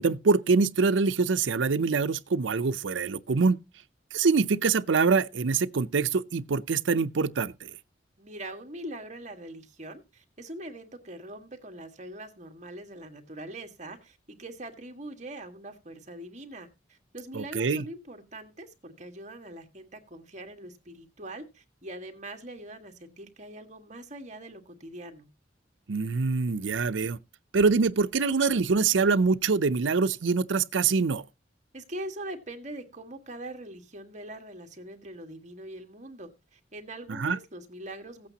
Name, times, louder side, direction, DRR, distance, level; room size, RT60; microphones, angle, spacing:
voice 1, 0.0-3.6 4.1-7.7 17.3-17.8 25.9-27.2 27.5-31.2 37.1-37.4, right 4 dB, 85° right, 0.6 m, -24 dB
voice 2, 8.2-25.3 31.7-38.3, right 1 dB, 40° right, 1.8 m, -42 dB
16.5 x 8.5 x 2.9 m
head